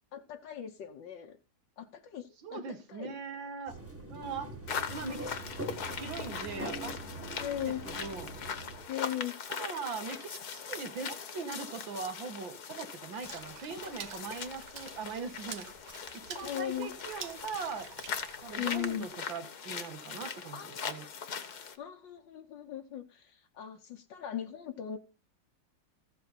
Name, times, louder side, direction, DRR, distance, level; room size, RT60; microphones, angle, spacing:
voice 1, 0.1-1.4 1.8-3.1 7.4-7.8 8.9-9.3 16.4-16.9 18.6-19.1 20.5-21.1 21.8-25.0, left 11 dB, 75° left, 1.7 m, -38 dB
voice 2, 2.4-3.8 4.1-4.5 4.9-5.4 5.9-7.0 7.6-8.3 9.5-15.7 16.1-17.9 18.4-21.1, right 5 dB, 90° right, 2.3 m, -41 dB
sound 1, 3.7-8.8, right 2 dB, 10° right, 1.6 m, -43 dB
sound 2, 4.7-21.8, left 7 dB, 60° left, 1.6 m, -41 dB
Water / Splash splatter, 13.2-19.0, right 7 dB, 65° right, 1.7 m, -48 dB
14.5 x 8.3 x 4.1 m
omnidirectional pair, 2.0 m